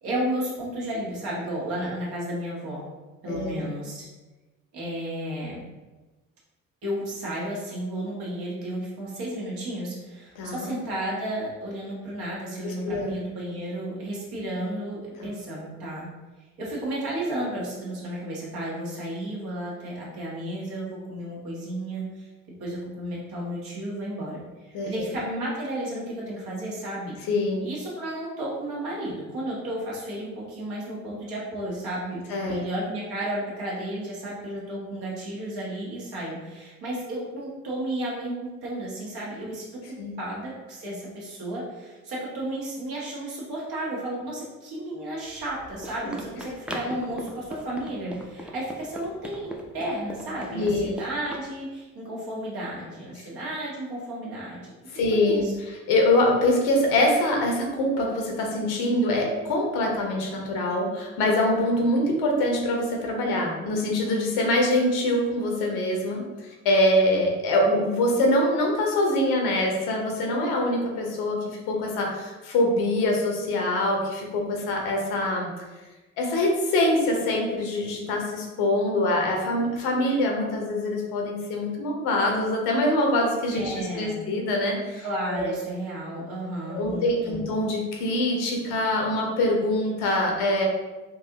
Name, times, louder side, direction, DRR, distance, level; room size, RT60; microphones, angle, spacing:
voice 1, 0.0-2.8 3.2-4.1 4.7-5.6 6.8-16.1 16.4-22.3 22.6-27.2 27.6-55.5 83.5-84.2 85.0-87.4, right 1 dB, 65° right, -5 dB, 1.4 m, -33 dB
voice 2, 3.3-3.6 10.4-10.7 12.6-13.1 15.2-15.3 24.7-25.1 27.3-27.7 32.3-32.6 40.0-40.1 50.5-50.9 54.9-75.5 76.2-85.6 86.7-90.6, left 1 dB, 70° left, 0 dB, 0.9 m, -24 dB
Run, 45.3-51.5, equal, 5° right, 0.5 m, -40 dB
3.9 x 2.6 x 2.8 m, 1.2 s
hypercardioid pair, 45°, 41 cm